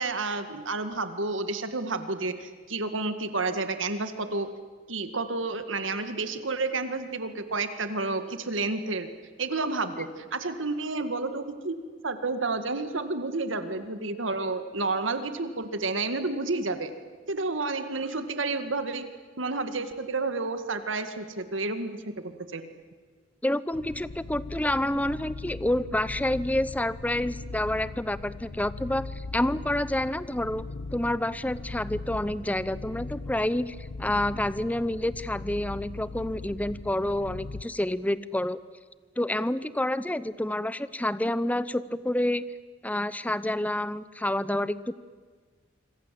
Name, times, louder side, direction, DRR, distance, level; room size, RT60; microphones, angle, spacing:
voice 1, 0.0-4.5 4.9-9.1 9.4-16.9 17.3-19.1 19.4-22.6, right 3 dB, 80° right, 9 dB, 2.0 m, -30 dB
voice 2, 23.4-30.6 30.9-38.6 39.2-42.5 42.8-44.9, left 1 dB, 10° left, 16 dB, 0.7 m, -28 dB
sound 1, 23.7-37.6, left 3 dB, 90° left, 0.8 m, -39 dB
26.5 x 25.5 x 7.7 m, 1.5 s
head